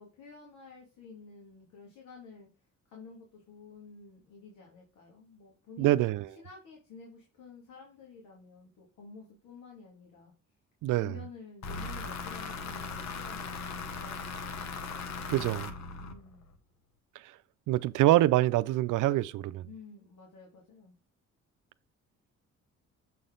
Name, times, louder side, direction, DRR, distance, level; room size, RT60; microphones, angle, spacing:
voice 1, 0.0-2.5 2.9-6.0 6.4-10.3 10.9-14.5 16.0-16.4 19.6-21.0, left 4 dB, 85° left, 2.4 m, -51 dB
voice 2, 5.8-6.3 10.8-11.1 15.3-15.7 17.7-19.7, right 15 dB, 85° right, 0.5 m, -25 dB
Trap Digital Synthesised Vinyl, 11.6-16.6, left 4 dB, 65° left, 1.2 m, -39 dB
7.4 x 4.2 x 3.8 m
cardioid pair, 90°, 30 cm